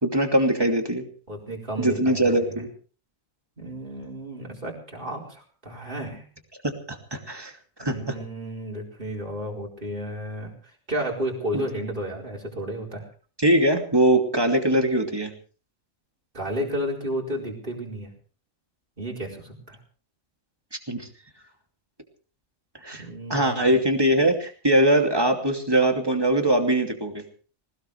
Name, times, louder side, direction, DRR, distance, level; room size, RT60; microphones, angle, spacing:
voice 1, 0.0-1.1 1.8-2.7 6.9-7.5 7.8-8.2 11.5-11.6 13.4-15.3 20.9-21.1 22.8-27.2, right 1 dB, 15° right, 3 dB, 2.7 m, -22 dB
voice 2, 1.3-2.6 3.6-6.2 7.8-10.5 10.9-13.1 16.3-18.1 19.0-19.8 22.9-24.0, equal, 40° right, -1 dB, 4.8 m, -32 dB
21.0 x 19.5 x 3.3 m, 0.40 s
omnidirectional pair, 1.4 m